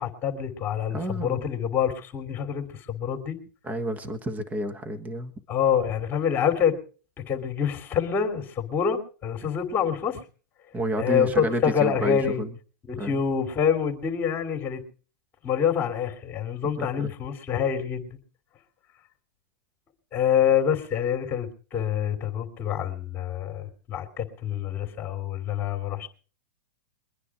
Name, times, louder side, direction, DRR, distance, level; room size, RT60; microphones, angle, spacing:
voice 1, 0.0-3.4 5.5-6.8 7.2-10.2 11.0-12.4 12.9-14.8 15.4-18.2 20.1-26.1, left 8 dB, 20° left, 5 dB, 3.1 m, -26 dB
voice 2, 0.9-1.4 3.6-5.3 10.7-12.5 12.9-13.1 16.8-17.1, right 1 dB, 15° right, 10 dB, 1.5 m, -30 dB
23.0 x 9.8 x 4.8 m, 0.39 s
hypercardioid pair, 140°, 10 cm